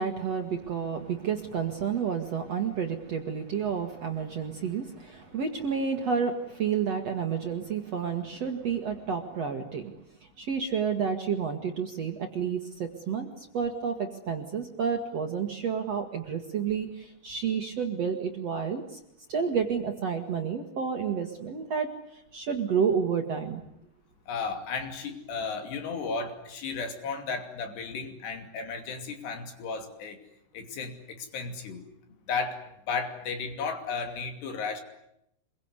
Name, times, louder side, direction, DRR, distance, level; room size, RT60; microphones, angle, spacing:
voice 1, 0.0-9.9 10.4-19.0 19.3-23.6, right 6 dB, 55° right, 5 dB, 2.0 m, -30 dB
voice 2, 24.3-30.2 30.5-31.8 32.3-32.6 32.9-34.8, left 5 dB, 75° left, 6 dB, 4.9 m, -34 dB
25.5 x 22.5 x 9.7 m, 0.78 s
omnidirectional pair, 4.9 m